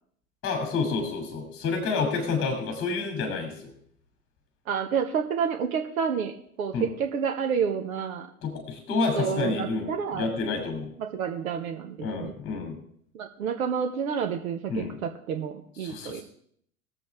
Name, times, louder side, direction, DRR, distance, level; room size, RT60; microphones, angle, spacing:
voice 1, 0.4-3.7 6.7-6.9 8.4-10.9 12.0-12.8 14.7-15.0 15.8-16.2, left 4 dB, 30° left, 3 dB, 2.9 m, -29 dB
voice 2, 4.7-8.3 9.2-10.3 11.0-12.3 13.1-16.2, right 7 dB, 65° right, 5 dB, 1.3 m, -29 dB
20.5 x 7.6 x 3.6 m, 0.64 s
figure-of-eight pair, 85°, 44 cm